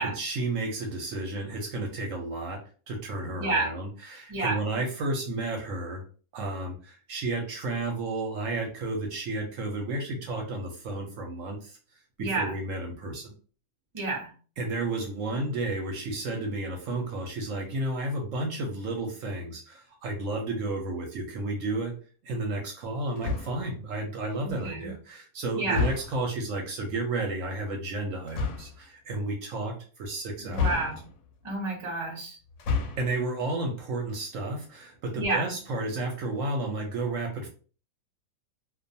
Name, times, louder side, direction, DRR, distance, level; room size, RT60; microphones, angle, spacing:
voice 1, 0.0-6.0 6.3-11.8 12.2-13.3 14.6-22.0 22.2-30.7 33.0-37.5, right 2 dB, 70° right, 2 dB, 0.8 m, -32 dB
voice 2, 3.4-3.7 4.3-4.6 12.2-12.6 13.9-14.3 24.4-24.9 25.5-25.9 30.5-31.0 31.4-32.4 35.2-35.5, right 3 dB, 35° right, 0 dB, 0.5 m, -29 dB
sound 1, 23.2-23.7 25.7-26.3 28.3-28.8 30.5-31.3 32.5-33.2, left 5 dB, 65° left, 0.8 m, -30 dB
2.4 x 2.3 x 2.6 m, 0.38 s
omnidirectional pair, 1.6 m